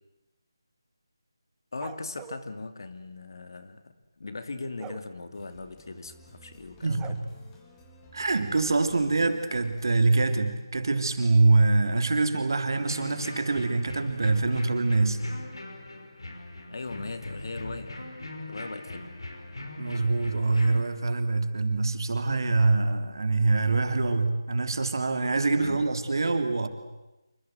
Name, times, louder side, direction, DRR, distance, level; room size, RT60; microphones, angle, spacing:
voice 1, 1.7-7.2 16.7-18.0 18.5-19.1 25.6-25.9, left 3 dB, 60° left, 9 dB, 2.6 m, -39 dB
sound 1, 1.8-2.4 4.8-5.1 7.0-7.1, right 10 dB, 10° right, 1.1 m, -43 dB
sound 2, 5.3-10.5, equal, 10° left, 3.7 m, -54 dB
voice 2, 6.8-7.2 8.1-15.2 19.8-26.7, right 3 dB, 60° right, 7 dB, 3.2 m, -24 dB
sound 3, 12.7-20.8, left 2 dB, 75° left, 5.5 m, -40 dB
27.0 x 25.0 x 8.0 m, 1.0 s
figure-of-eight pair, 160°, 2 cm